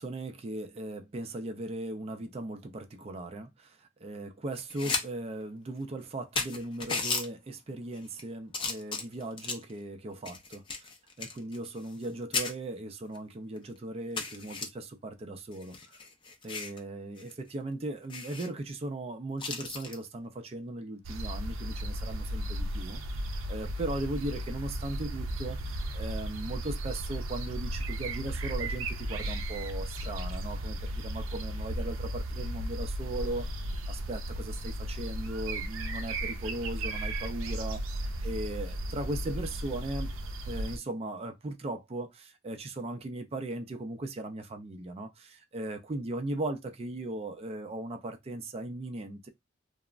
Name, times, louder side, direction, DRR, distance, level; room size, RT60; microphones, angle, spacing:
voice 1, 0.0-10.9 11.2-16.0 16.4-23.0 23.3-33.5 33.9-40.1 40.5-49.3, right 2 dB, 30° right, 0.4 m, -38 dB
sound 1, 4.5-5.0 5.4-5.5 6.0-6.1 6.4-7.3 7.9-8.2 8.5-9.7 10.3-12.1 12.3-12.5 13.1-13.2 13.6-13.7 14.2-14.7 15.5-16.8 17.2-17.3 17.6-17.7 18.1-18.5 19.4-20.0 21.7-21.9, left 4 dB, 25° left, 0.5 m, -35 dB
sound 2, 21.0-40.8, right 1 dB, 90° right, 0.5 m, -35 dB
3.1 x 2.0 x 2.4 m
head